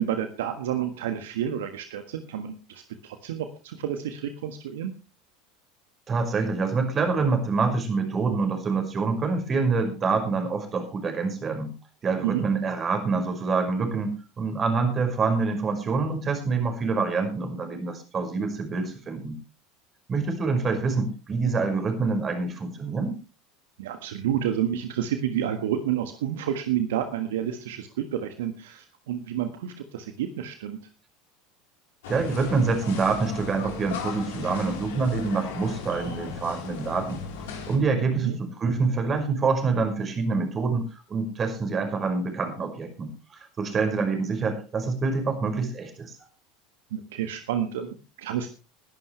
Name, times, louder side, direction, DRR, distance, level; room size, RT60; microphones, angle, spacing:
voice 1, 0.0-4.9 12.2-12.4 23.8-30.8 38.2-38.4 46.9-48.5, right 10 dB, 70° right, 8 dB, 1.5 m, -30 dB
voice 2, 6.1-11.8 12.0-19.4 20.1-23.2 32.1-37.2 37.7-46.1, right 4 dB, 30° right, 5 dB, 5.4 m, -26 dB
sound 1, 32.0-37.8, left 5 dB, 70° left, 3.8 m, -36 dB
21.5 x 11.5 x 3.3 m, 0.32 s
figure-of-eight pair, 75°, 0 cm